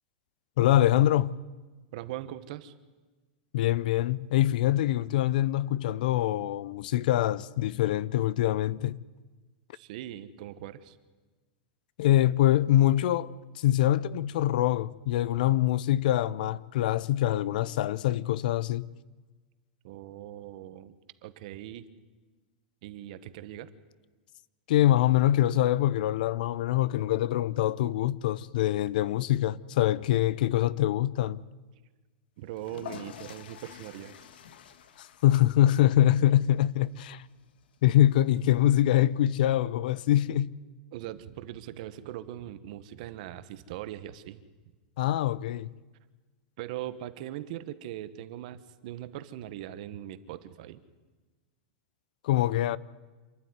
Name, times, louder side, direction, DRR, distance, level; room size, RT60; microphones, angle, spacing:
voice 1, 0.6-1.3 3.5-9.0 12.0-18.9 24.7-31.4 35.0-37.2 37.8-40.5 45.0-45.7 52.2-52.8, left 13 dB, 60° left, 0.6 m, -24 dB
voice 2, 1.9-2.7 9.7-11.0 19.8-20.9 21.2-21.9 22.8-23.7 32.4-34.1 40.9-44.4 46.6-50.8, right 12 dB, 50° right, 1.2 m, -40 dB
sound 1, 32.5-39.3, left 9 dB, 90° left, 1.5 m, -49 dB
27.0 x 12.0 x 9.6 m
supercardioid pair, 170°, 5 cm